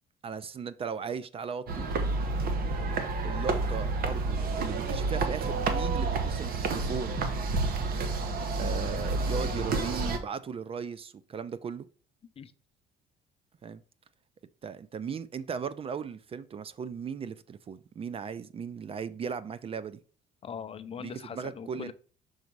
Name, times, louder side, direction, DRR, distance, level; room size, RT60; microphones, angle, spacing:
voice 1, 0.2-1.9 3.2-7.2 8.6-11.9 13.6-13.8 14.6-20.0 21.0-21.9, right 6 dB, 35° right, 0.4 m, -37 dB
sound 1, 1.7-10.2, right 3 dB, 60° right, 1.1 m, -29 dB
voice 2, 20.4-21.9, left 7 dB, 35° left, 0.5 m, -41 dB
6.1 x 4.0 x 4.6 m
cardioid pair, 110°, 17 cm